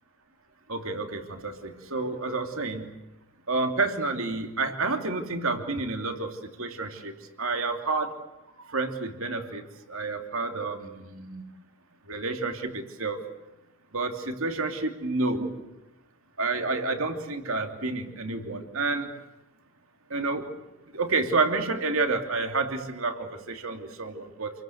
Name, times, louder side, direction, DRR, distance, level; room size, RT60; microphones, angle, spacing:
voice 1, 0.7-2.9 3.5-7.1 7.4-8.2 8.7-11.4 12.1-13.2 13.9-15.5 16.4-19.1 20.1-20.5 20.9-24.5, right 3 dB, 70° right, 5 dB, 2.9 m, -29 dB
28.5 x 23.0 x 7.9 m, 0.97 s
head